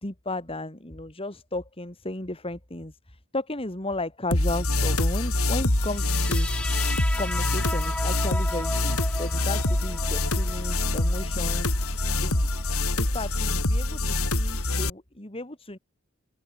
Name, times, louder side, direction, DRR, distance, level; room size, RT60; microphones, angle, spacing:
voice 1, 0.0-6.5 7.2-11.8 12.2-12.5 13.0-15.8, left 2 dB, 25° left, 2.7 m, -34 dB
sound 1, 4.3-14.9, left 2 dB, 90° left, 4.8 m, -25 dB
sound 2, 5.9-12.9, left 1 dB, 5° left, 5.5 m, -37 dB
open air
head